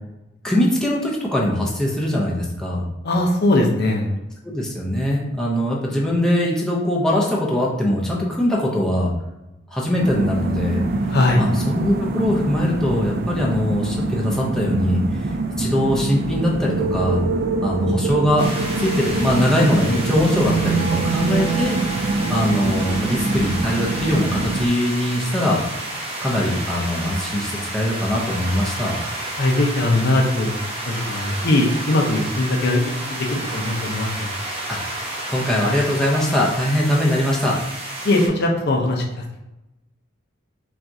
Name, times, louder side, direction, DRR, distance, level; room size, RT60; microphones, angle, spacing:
voice 1, 0.4-2.8 4.4-9.1 9.7-10.8 11.4-15.3 15.6-17.2 17.6-18.5 18.8-21.8 22.3-25.6 26.2-28.9 34.7-34.8 35.3-37.6, left 1 dB, 5° left, -4 dB, 0.6 m, -21 dB
voice 2, 3.0-4.1 11.1-11.4 29.4-30.5 30.9-34.3 38.0-39.4, left 1 dB, 55° left, 0 dB, 0.6 m, -20 dB
sound 1, 10.0-24.7, right 3 dB, 50° right, 0.3 m, -24 dB
sound 2, 18.4-38.3, right 1 dB, 30° right, 0.9 m, -31 dB
5.8 x 2.4 x 2.7 m, 0.94 s
head